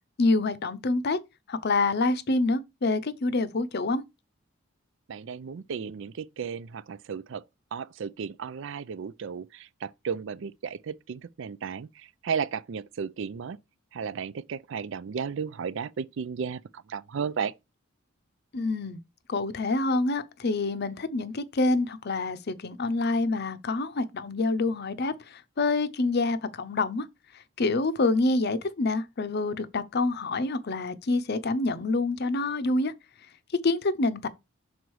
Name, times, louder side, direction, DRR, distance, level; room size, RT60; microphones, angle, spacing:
voice 1, 0.2-1.2 1.5-4.0 18.5-19.0 19.3-27.1 27.6-32.9 33.6-34.3, left 3 dB, 50° left, 0.6 m, -27 dB
voice 2, 5.1-7.4 7.7-13.6 13.9-17.5, right 6 dB, 60° right, 0.4 m, -34 dB
6.2 x 4.0 x 4.7 m
head